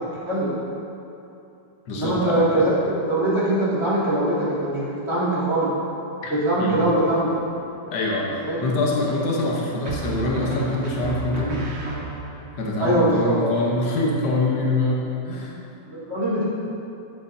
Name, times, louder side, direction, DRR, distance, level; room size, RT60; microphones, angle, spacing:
voice 1, 0.0-0.5 1.9-5.8 6.3-7.3 8.4-8.6 12.8-13.5 15.9-16.4, right 1 dB, 35° right, -9 dB, 2.6 m, -22 dB
voice 2, 1.9-2.6 6.2-6.3 6.6-6.8 7.9-11.6 12.6-15.6, left 2 dB, 70° left, -2 dB, 1.7 m, -24 dB
sound 1, 7.2-7.8 9.8-12.5, right 3 dB, 80° right, 2.4 m, -32 dB
13.0 x 7.8 x 2.7 m, 2.8 s
omnidirectional pair, 1.9 m